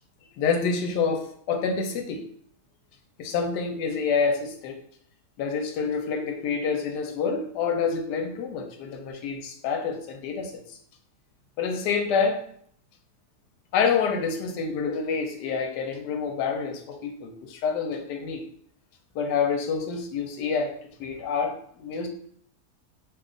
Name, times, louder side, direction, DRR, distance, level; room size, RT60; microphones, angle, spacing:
voice 1, 0.4-2.2 3.2-4.8 5.4-10.6 11.6-12.4 13.7-18.4 19.1-20.7 21.0-22.1, left 5 dB, 85° left, 5 dB, 1.2 m, -27 dB
3.0 x 2.3 x 3.7 m, 0.62 s
omnidirectional pair, 1.8 m